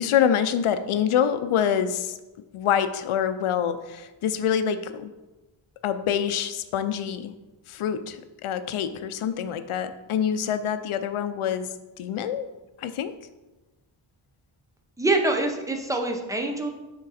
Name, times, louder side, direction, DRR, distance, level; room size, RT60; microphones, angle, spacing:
voice 1, 0.0-2.2 2.5-5.1 5.8-7.3 7.7-11.7 12.0-12.5 12.8-13.1, left 8 dB, 90° left, 11 dB, 0.6 m, -26 dB
voice 2, 15.0-16.7, right 2 dB, 5° right, 3 dB, 0.6 m, -25 dB
6.3 x 3.8 x 4.1 m, 1.1 s
wide cardioid pair, 130°, 49 cm